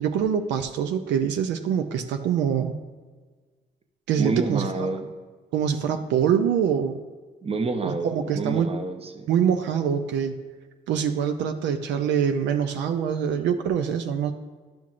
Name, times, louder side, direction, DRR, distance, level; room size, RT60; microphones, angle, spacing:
voice 1, 0.0-2.7 4.1-4.7 5.5-7.0 7.8-8.7 9.3-10.4 10.9-14.3, right 8 dB, 90° right, 7 dB, 0.5 m, -24 dB
voice 2, 4.2-5.1 7.4-9.3, right 3 dB, 35° right, 7 dB, 0.8 m, -28 dB
10.5 x 5.8 x 2.4 m, 1.4 s
cardioid pair, 70°, 18 cm